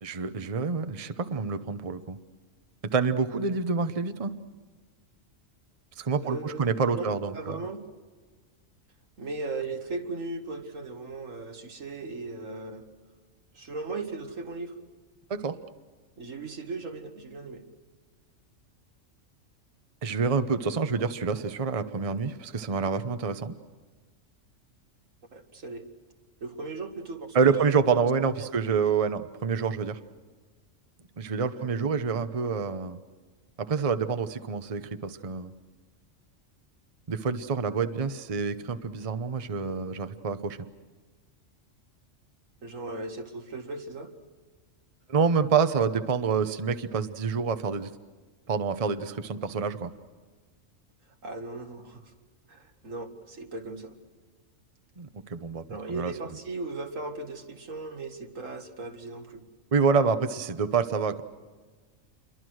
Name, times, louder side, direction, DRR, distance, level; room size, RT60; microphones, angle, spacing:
voice 1, 0.0-2.2 2.9-4.3 6.0-7.6 15.3-15.6 20.0-23.5 27.3-30.0 31.2-33.0 33.6-35.5 37.1-40.6 45.1-47.9 48.5-49.9 55.0-56.1 59.7-61.2, right 5 dB, 30° right, 10 dB, 0.9 m, -27 dB
voice 2, 6.2-7.8 9.2-12.8 13.5-14.7 16.2-17.6 25.3-25.8 26.4-28.1 28.4-28.5 31.5-31.7 42.6-44.1 51.2-52.1 52.5-54.0 55.7-59.4, right 3 dB, 85° right, 4 dB, 2.3 m, -37 dB
28.0 x 23.5 x 6.4 m, 1.4 s
omnidirectional pair, 1.3 m